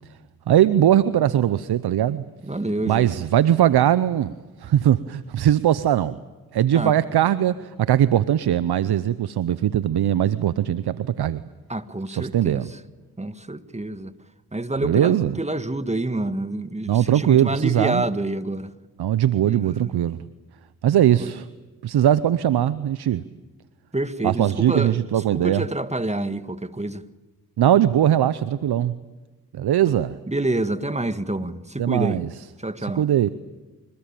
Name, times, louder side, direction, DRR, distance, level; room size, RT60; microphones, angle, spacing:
voice 1, 0.5-2.2 2.9-4.3 4.6-6.2 6.5-11.4 12.1-12.7 14.8-15.4 16.9-18.0 19.0-20.2 20.8-21.4 21.8-23.2 24.2-25.6 27.6-29.0 29.5-30.2 31.8-32.3 32.8-33.3, right 11 dB, 75° right, 0.8 m, -20 dB
voice 2, 2.4-3.1 6.7-7.0 11.7-12.8 13.2-14.1 14.5-18.7 19.4-19.9 20.9-21.3 23.9-25.0 25.4-27.0 30.3-32.2 32.6-33.0, right 2 dB, 15° right, 1.7 m, -27 dB
26.5 x 21.0 x 8.9 m
supercardioid pair, 40°, 39 cm